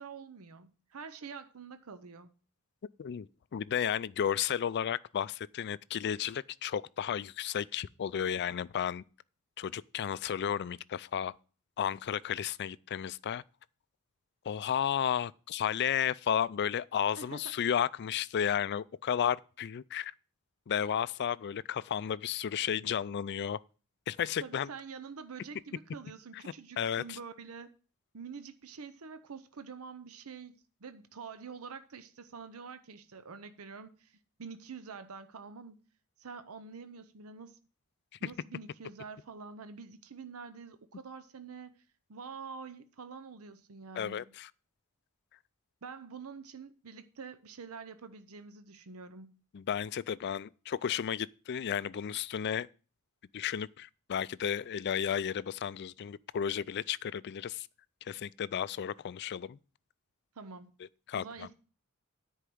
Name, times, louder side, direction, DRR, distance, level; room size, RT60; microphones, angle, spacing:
voice 1, 0.0-2.3 17.2-17.5 24.4-27.7 28.1-35.8 36.2-37.6 38.2-41.7 42.1-44.3 45.8-49.4 60.3-60.7 61.1-61.5, right 5 dB, 75° right, 0.7 m, -46 dB
voice 2, 3.5-9.0 9.6-11.3 11.8-13.4 14.4-20.1 20.7-23.6 24.1-24.7 26.3-26.4 26.8-27.2 38.2-38.3 43.9-44.5 49.5-52.7 53.3-57.7 58.0-59.6 61.1-61.5, left 8 dB, 50° left, 0.4 m, -33 dB
10.0 x 4.6 x 7.8 m
head